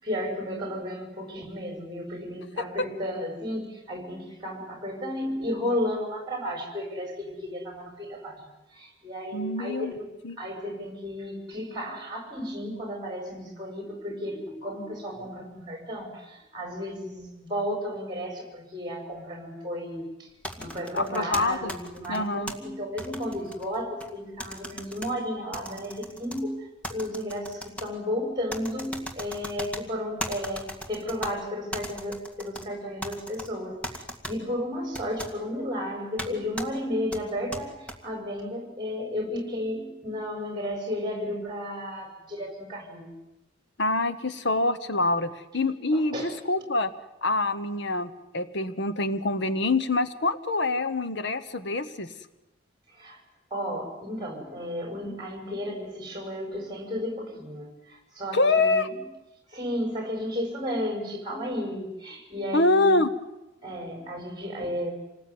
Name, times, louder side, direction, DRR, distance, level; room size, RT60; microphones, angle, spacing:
voice 1, 0.0-10.1 10.4-43.1 45.9-46.3 52.9-53.2 53.5-58.9 59.5-63.0 63.6-64.9, equal, 20° right, 4 dB, 6.5 m, -33 dB
voice 2, 9.3-9.9 10.2-10.4 20.9-21.7 22.1-22.5 43.8-46.9 47.2-52.1 58.3-58.9 62.5-63.1, left 2 dB, 60° left, 12 dB, 1.2 m, -25 dB
sound 1, 20.4-22.5 23.0-24.1 24.4-25.1 25.5-26.4 26.8-27.9 28.5-29.8 30.2-31.3 31.7-32.6 33.0-33.5 33.8-34.3 34.9-35.3 36.2-36.3 36.6-36.7 37.1-37.9, equal, 5° left, 2.3 m, -37 dB
27.5 x 19.5 x 9.6 m, 0.99 s
head